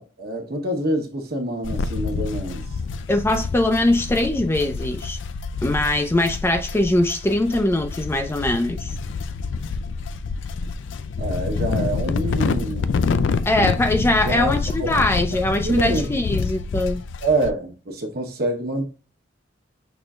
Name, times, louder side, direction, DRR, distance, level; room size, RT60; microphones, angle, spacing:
voice 1, 0.0-2.6 11.2-13.0 14.2-14.5 14.8-15.0 15.5-16.2 17.2-18.9, right 1 dB, 55° right, 1.1 m, -26 dB
sound 1, 1.6-17.5, left 4 dB, 85° left, 0.4 m, -27 dB
voice 2, 3.1-5.2 5.6-8.9 13.5-17.0, left 1 dB, 15° left, 0.4 m, -21 dB
6.0 x 3.2 x 2.4 m
head